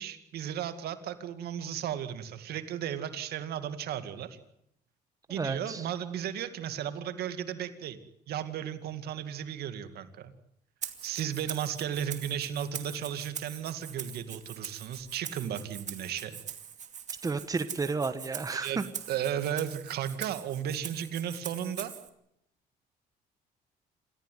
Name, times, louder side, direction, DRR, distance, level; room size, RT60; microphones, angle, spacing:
voice 1, 0.0-4.4 5.3-8.0 8.3-10.3 11.0-16.4 18.6-18.8 19.1-21.9, right 9 dB, 70° right, 10 dB, 2.2 m, -35 dB
voice 2, 5.3-5.9 17.2-18.8, right 4 dB, 20° right, 11 dB, 1.4 m, -32 dB
Rattle (instrument), 10.8-22.1, right 8 dB, 45° right, 2.4 m, -43 dB
28.0 x 15.0 x 9.5 m, 0.76 s
cardioid pair, 110°, 17 cm